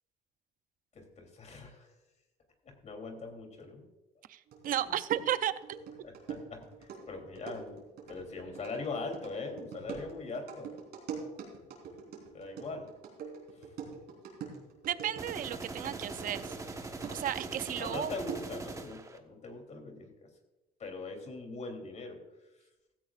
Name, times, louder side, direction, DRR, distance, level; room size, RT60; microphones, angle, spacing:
voice 1, 0.9-1.9 2.8-3.9 4.8-4.9 6.0-7.8 8.1-10.7 12.3-12.9 13.6-13.7 17.8-20.1 20.8-22.2, left 3 dB, 45° left, 3 dB, 3.4 m, -41 dB
voice 2, 4.3-5.8 12.1-12.3 14.9-16.6 17.1-18.1, right 11 dB, 55° right, 13 dB, 0.6 m, -34 dB
sound 1, 4.5-16.7 17.0-18.6, right 6 dB, 70° right, 4.2 m, -45 dB
sound 2, 15.2-19.2, right 3 dB, 20° right, 1.2 m, -42 dB
16.0 x 15.0 x 2.5 m, 1.0 s
cardioid pair, 110°, 17 cm